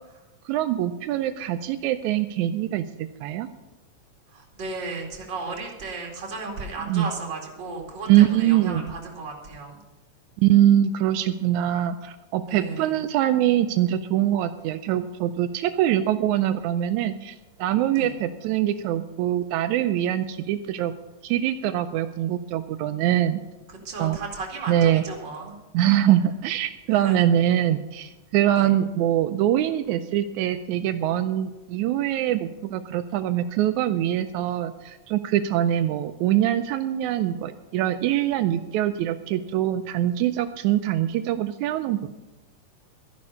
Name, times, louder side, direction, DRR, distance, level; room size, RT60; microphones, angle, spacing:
voice 1, 0.5-3.5 6.9-7.1 8.1-8.9 10.4-20.9 21.2-23.4 24.0-24.2 24.7-25.0 25.7-42.1, right 12 dB, 85° right, 9 dB, 2.0 m, -23 dB
voice 2, 4.3-9.8 12.5-13.0 17.9-18.1 23.7-25.5 27.0-27.3 28.6-28.7, right 3 dB, 40° right, 0 dB, 2.8 m, -35 dB
13.0 x 10.5 x 5.6 m, 1.1 s
omnidirectional pair, 3.4 m